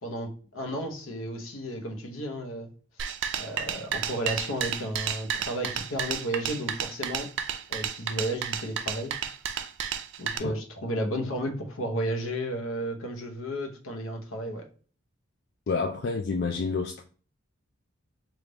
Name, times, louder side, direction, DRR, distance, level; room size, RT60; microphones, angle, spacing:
voice 1, 0.0-2.7 3.0-3.1 3.4-7.3 7.7-9.2 10.2-14.7, equal, 80° left, 0.8 m, -33 dB
sound 1, 3.0-10.4, right 8 dB, 60° right, 0.4 m, -32 dB
voice 2, 15.7-17.0, left 4 dB, 55° left, 0.3 m, -29 dB
3.4 x 2.4 x 3.8 m
head